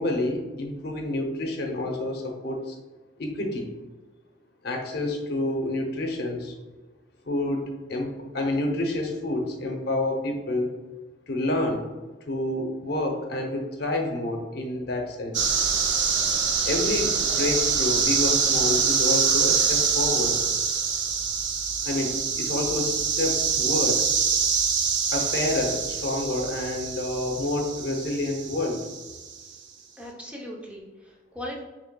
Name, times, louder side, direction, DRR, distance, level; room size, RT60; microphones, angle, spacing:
voice 1, 0.0-2.8 3.2-3.7 4.6-6.6 7.3-10.7 11.3-11.9 12.3-15.4 16.6-20.4 21.8-24.1 25.1-28.8, left 2 dB, 60° left, 2 dB, 0.7 m, -28 dB
sound 1, 15.3-29.4, right 6 dB, 70° right, 0.6 m, -25 dB
voice 2, 30.0-31.6, equal, 5° right, -2 dB, 0.6 m, -39 dB
6.5 x 3.3 x 2.2 m, 1.3 s
head